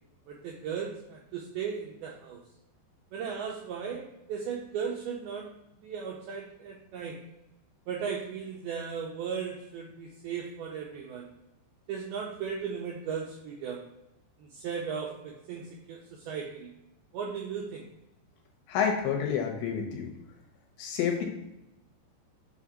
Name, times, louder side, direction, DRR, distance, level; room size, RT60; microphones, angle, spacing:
voice 1, 0.3-2.4 3.1-4.0 4.3-5.5 5.8-7.2 7.9-11.3 11.9-13.9 14.4-16.0 16.3-16.7 17.1-17.8, right 6 dB, 85° right, -2 dB, 2.2 m, -36 dB
voice 2, 18.7-20.1 20.8-21.2, left 7 dB, 80° left, 1 dB, 3.2 m, -28 dB
6.9 x 2.8 x 4.9 m, 0.89 s
omnidirectional pair, 5.2 m